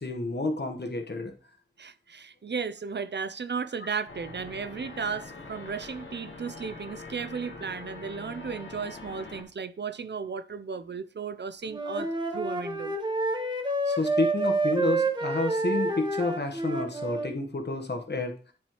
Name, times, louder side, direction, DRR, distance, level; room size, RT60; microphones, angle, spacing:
voice 1, 0.0-1.3 13.9-18.3, left 2 dB, 60° left, 1.3 m, -30 dB
voice 2, 1.8-12.1 12.3-12.9, right 5 dB, 65° right, 0.5 m, -35 dB
sound 1, 4.1-9.4, left 3 dB, 80° left, 1.4 m, -43 dB
Wind instrument woodwind instrument, 11.7-17.3, right 2 dB, 20° right, 1.2 m, -28 dB
9.4 x 4.7 x 3.0 m
wide cardioid pair, 40°, 20 cm